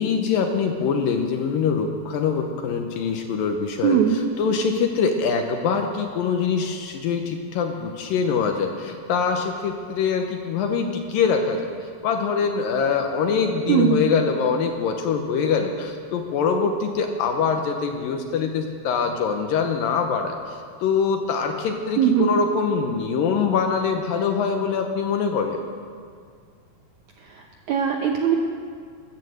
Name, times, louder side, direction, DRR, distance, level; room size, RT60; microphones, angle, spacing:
voice 1, 0.0-4.0 4.4-25.6, left 5 dB, 70° left, 4 dB, 2.4 m, -24 dB
voice 2, 3.8-4.2 13.7-14.0 22.0-22.3 27.2-28.4, right 8 dB, 75° right, 1 dB, 1.8 m, -20 dB
14.5 x 11.5 x 7.7 m, 2.1 s
omnidirectional pair, 4.4 m